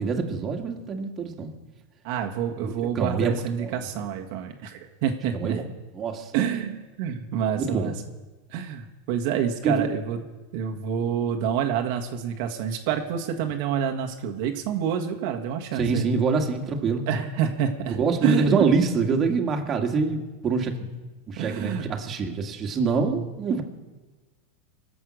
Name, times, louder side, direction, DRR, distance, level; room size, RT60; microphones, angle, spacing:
voice 1, 0.0-1.5 2.6-3.3 3.6-3.7 5.3-5.7 5.9-6.3 7.5-7.9 9.6-9.9 15.8-17.0 17.9-20.9 21.3-23.6, right 4 dB, 30° right, 2 dB, 2.0 m, -25 dB
voice 2, 2.0-5.6 6.3-7.9 8.5-10.2 10.5-16.1 17.1-18.7 21.4-21.9, right 8 dB, 60° right, 3 dB, 1.5 m, -28 dB
23.5 x 7.9 x 6.4 m, 1.3 s
supercardioid pair, 120°, 0 cm